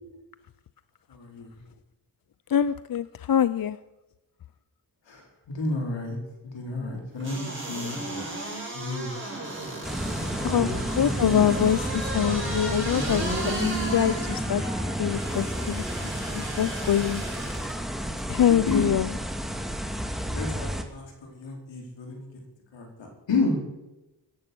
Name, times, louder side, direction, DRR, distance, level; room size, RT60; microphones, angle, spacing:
voice 1, 1.1-1.6 5.1-6.2 6.4-8.3 8.7-9.1 10.4-11.4 18.7-18.9 20.2-22.3 22.7-23.6, left 3 dB, 75° left, 0 dB, 4.6 m, -31 dB
voice 2, 2.5-3.8 10.5-10.7 11.0-14.6 15.0-17.2 18.3-19.1, left 9 dB, 50° left, 15 dB, 0.6 m, -25 dB
sound 1, 7.2-17.7 18.2-18.3, right 2 dB, 25° right, 7.0 m, -34 dB
sound 2, 9.8-20.8, equal, ahead, 2.2 m, -31 dB
17.0 x 11.0 x 6.2 m, 1.0 s
cardioid pair, 55°, 44 cm